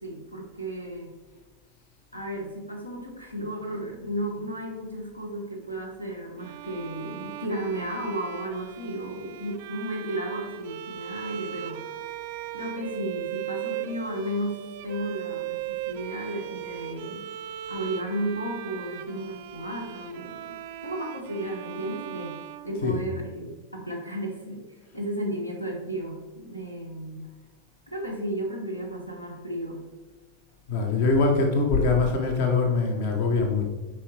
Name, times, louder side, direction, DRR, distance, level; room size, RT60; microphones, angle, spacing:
voice 1, 0.0-1.2 2.1-12.0 12.5-17.3 17.7-22.4 22.6-24.6 24.9-27.3 27.9-29.8 31.0-31.1, right 1 dB, 90° left, 0 dB, 1.2 m, -34 dB
Bowed string instrument, 6.4-23.4, right 12 dB, 50° right, 0.4 m, -38 dB
voice 2, 22.7-23.0 30.7-33.7, left 3 dB, 50° left, 3 dB, 0.9 m, -23 dB
8.6 x 4.7 x 3.3 m, 1.3 s
figure-of-eight pair, 90°, 0 cm